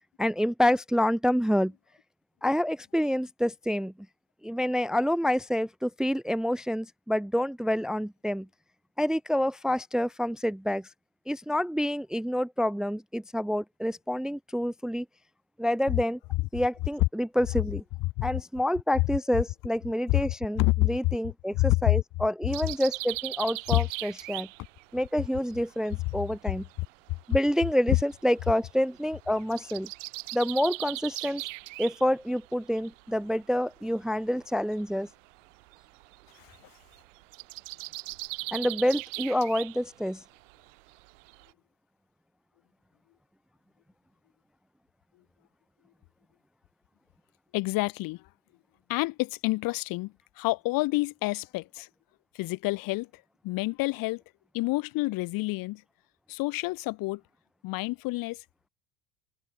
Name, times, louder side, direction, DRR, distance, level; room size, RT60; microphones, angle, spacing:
voice 1, 0.2-1.7 2.4-3.9 4.4-8.5 9.0-10.9 11.3-15.1 15.6-16.2 16.5-17.8 18.2-24.5 24.9-26.6 27.3-29.9 30.3-31.4 31.8-35.1 38.5-40.2, equal, ahead, 0.6 m, -28 dB
voice 2, 20.6-20.9 21.5-21.9 23.7-23.8 36.4-36.6 47.5-48.3 48.9-51.9 52.3-54.2 54.5-55.8 56.3-57.2 57.6-58.4, left 21 dB, 65° left, 2.2 m, -28 dB
sound 1, 22.5-26.8 27.1-33.3 33.6-41.5, right 26 dB, 80° right, 2.3 m, -39 dB
open air
supercardioid pair, 90°, 37 cm